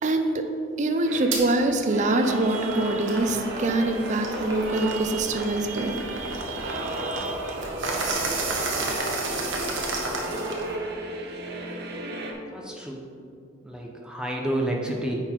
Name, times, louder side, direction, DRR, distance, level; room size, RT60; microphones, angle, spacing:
voice 1, 0.0-0.5 0.8-7.5, right 2 dB, 40° right, 6 dB, 0.5 m, -25 dB
sound 1, 1.0-12.3, right 1 dB, 55° right, 0.9 m, -34 dB
sound 2, 1.3-1.4 1.9-10.7, right 3 dB, 85° right, 1.2 m, -32 dB
voice 2, 12.5-13.0 13.6-15.2, right 1 dB, 5° right, -1 dB, 0.8 m, -29 dB
9.5 x 4.3 x 4.5 m, 2.4 s
head